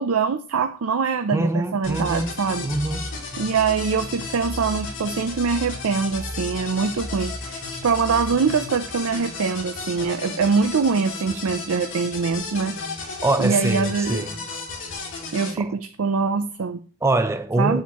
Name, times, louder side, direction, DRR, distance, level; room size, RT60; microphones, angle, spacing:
voice 1, 0.0-2.7 3.4-14.3 15.3-16.8 17.6-17.8, right 5 dB, 80° right, 0.5 m, -24 dB
voice 2, 1.3-3.1 13.2-14.3 15.6-15.7 17.0-17.8, right 2 dB, 15° right, 0.5 m, -24 dB
sound 1, 1.8-15.5, left 3 dB, 65° left, 2.8 m, -33 dB
8.3 x 7.3 x 3.0 m
head